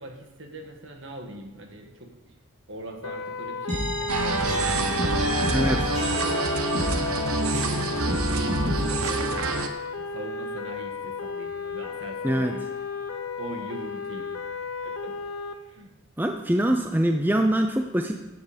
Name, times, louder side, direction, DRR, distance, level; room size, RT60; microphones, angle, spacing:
voice 1, 0.0-2.3 2.7-5.6 6.0-6.6 7.4-12.7 13.4-14.3 14.8-15.2 15.6-15.9, right 1 dB, 60° right, 3 dB, 1.8 m, -41 dB
sound 1, 3.0-15.5, left 4 dB, 85° left, 1.1 m, -34 dB
sound 2, 3.7-7.8 8.1-9.1, equal, 35° right, 5.3 m, -30 dB
sound 3, 4.1-9.7, right 2 dB, 85° right, 1.1 m, -27 dB
voice 2, 5.5-5.9 12.2-12.5 16.2-18.2, right 1 dB, 10° right, 4 dB, 0.5 m, -24 dB
15.0 x 8.0 x 5.1 m, 1.0 s
head